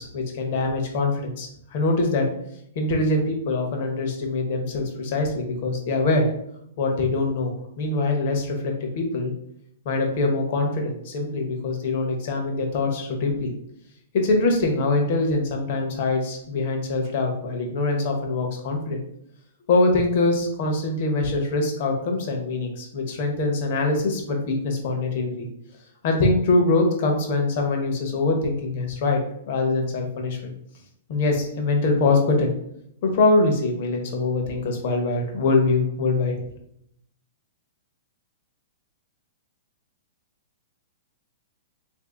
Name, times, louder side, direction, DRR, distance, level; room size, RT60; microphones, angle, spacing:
voice 1, 0.0-2.3 2.8-6.3 6.8-9.3 9.8-13.5 14.1-19.0 19.7-25.5 26.0-29.2 29.5-30.5 31.1-32.5 33.0-36.3, left 3 dB, 45° left, 2 dB, 0.8 m, -23 dB
2.8 x 2.6 x 3.7 m, 0.73 s
hypercardioid pair, 165°, 0 cm